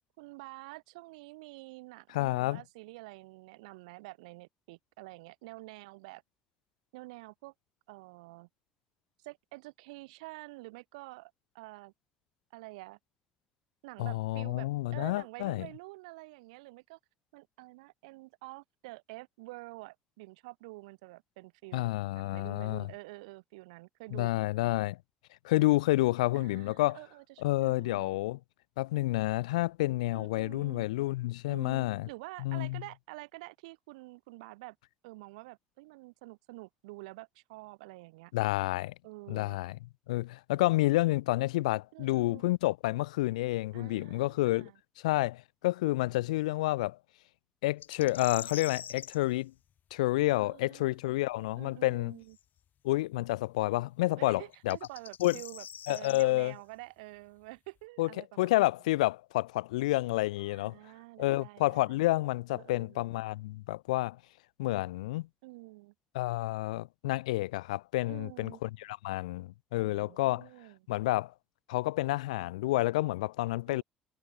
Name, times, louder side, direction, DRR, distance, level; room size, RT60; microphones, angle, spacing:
voice 1, 0.2-6.2 6.9-7.5 7.9-8.5 9.2-11.9 12.5-13.0 13.8-17.0 17.3-24.3 26.3-28.2 30.1-30.8 31.5-34.8 35.0-38.3 39.0-39.6 41.9-42.5 43.7-44.8 50.3-51.2 51.5-52.4 54.2-58.7 60.4-62.0 62.5-63.1 65.4-65.9 68.1-68.6 69.7-70.8 73.7-73.8, right 23 dB, 80° right, 7.9 m, -48 dB
voice 2, 2.1-2.6 14.0-15.7 21.7-22.9 24.1-25.0 25.4-27.0 27.4-28.4 28.8-32.1 32.4-32.8 38.3-38.9 39.3-39.8 40.1-44.7 45.0-47.0 47.6-49.5 49.9-52.2 52.8-54.8 55.2-55.4 55.9-56.5 58.0-58.1 58.4-60.8 61.2-64.2 64.6-65.3 66.1-70.5 70.9-71.3 71.7-73.8, left 18 dB, 80° left, 2.2 m, -29 dB
sound 1, 47.8-49.2 52.3-52.4 54.5-56.2, left 9 dB, 55° left, 2.6 m, -43 dB
hypercardioid pair, 50°, 4 cm